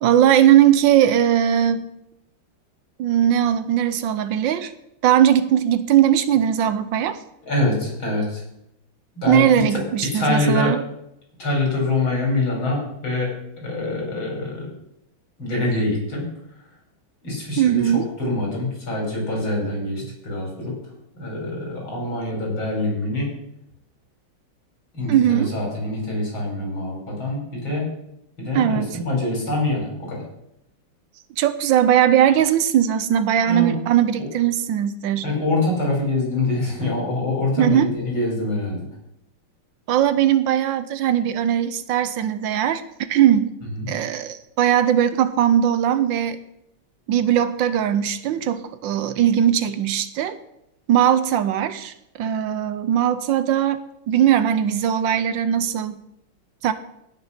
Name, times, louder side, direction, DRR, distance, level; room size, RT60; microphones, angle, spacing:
voice 1, 0.0-1.9 3.0-4.7 5.0-7.2 9.3-10.8 17.6-18.1 25.1-25.5 28.5-29.0 31.4-35.3 37.6-37.9 39.9-42.8 43.1-43.5 43.9-46.4 47.1-50.4 50.9-53.8 54.1-56.0 56.6-56.7, right 10 dB, 75° right, 13 dB, 1.4 m, -19 dB
voice 2, 7.5-8.4 9.2-9.8 10.1-10.8 11.4-14.7 15.4-16.3 17.2-20.8 21.2-23.3 24.9-27.9 28.4-30.2 33.4-33.7 35.2-38.9 43.7-43.9, left 2 dB, 80° left, -2 dB, 6.0 m, -25 dB
16.5 x 6.5 x 5.9 m, 0.81 s
omnidirectional pair, 2.2 m